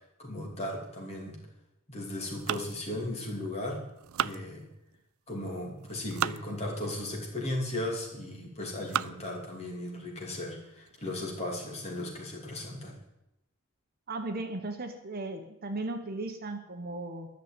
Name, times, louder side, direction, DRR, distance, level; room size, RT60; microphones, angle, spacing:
voice 1, 0.2-1.4 1.9-3.8 4.2-4.7 5.3-13.0, left 1 dB, 30° left, -1 dB, 3.0 m, -36 dB
sound 1, 2.3-3.5 3.9-5.0 5.7-6.4 7.1-7.2 7.9-8.3 8.7-9.3 9.9-10.0 10.4-10.5 10.9-11.2, right 10 dB, 70° right, 0.4 m, -35 dB
voice 2, 14.1-17.3, right 2 dB, 45° right, 6 dB, 1.1 m, -36 dB
11.5 x 6.7 x 8.8 m, 0.88 s
head